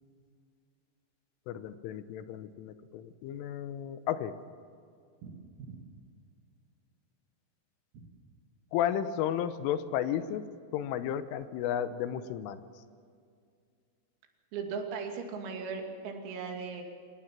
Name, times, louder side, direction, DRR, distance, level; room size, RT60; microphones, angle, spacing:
voice 1, 1.5-4.4 8.7-12.6, left 10 dB, 80° left, 12 dB, 3.3 m, -33 dB
voice 2, 5.2-5.8 14.5-16.8, right 5 dB, 90° right, 3 dB, 5.3 m, -38 dB
26.0 x 18.5 x 7.4 m, 2.3 s
omnidirectional pair, 5.9 m